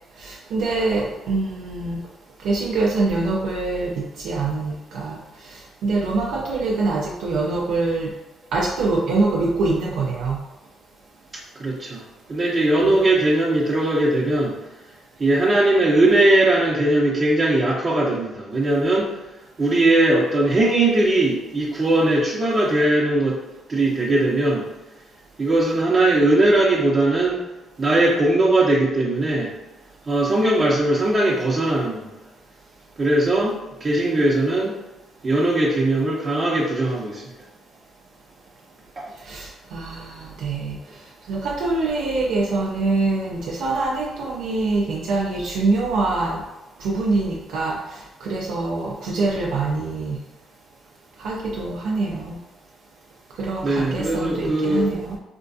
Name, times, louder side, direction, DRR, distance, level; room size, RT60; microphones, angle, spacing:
voice 1, 0.2-2.0 2.4-8.1 8.5-10.4 12.8-12.9 39.2-40.8 41.3-46.4 46.8-50.2 51.2-52.4 53.4-55.2, right 3 dB, 85° right, -2 dB, 0.4 m, -24 dB
voice 2, 11.6-14.6 15.2-19.1 19.6-23.4 23.7-24.7 25.4-27.4 27.8-29.5 30.1-32.1 33.0-34.8 35.2-37.3 39.0-39.1 53.6-54.9, right 2 dB, 40° right, -5 dB, 0.6 m, -19 dB
4.3 x 2.3 x 2.5 m, 1.0 s
cardioid pair, 90°, 0 cm